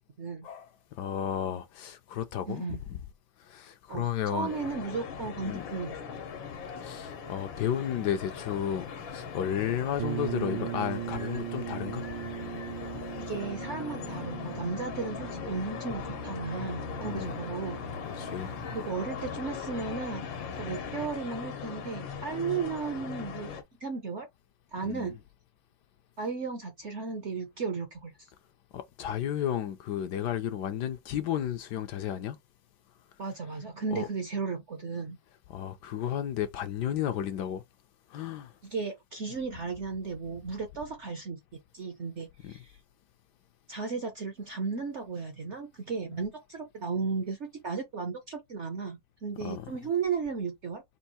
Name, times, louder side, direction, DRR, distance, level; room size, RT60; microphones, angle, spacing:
voice 1, 0.2-0.5 2.5-2.8 3.9-6.2 13.2-17.8 18.2-20.3 20.6-23.5 23.8-24.3 24.7-25.2 26.2-28.1 33.2-35.2 38.6-41.4 41.7-42.7 43.7-50.8, right 5 dB, 60° right, 0.7 m, -35 dB
voice 2, 1.0-2.7 3.5-4.5 5.4-5.6 6.8-12.1 17.1-17.3 18.0-18.5 24.9-25.1 28.7-32.4 33.9-34.1 35.5-37.6 38.1-38.5 42.4-42.5 49.4-49.7, left 10 dB, 70° left, 1.1 m, -33 dB
sound 1, 4.5-23.6, left 6 dB, 90° left, 1.8 m, -39 dB
sound 2, 10.0-19.7, right 14 dB, 80° right, 1.2 m, -40 dB
4.5 x 2.5 x 4.2 m
omnidirectional pair, 2.0 m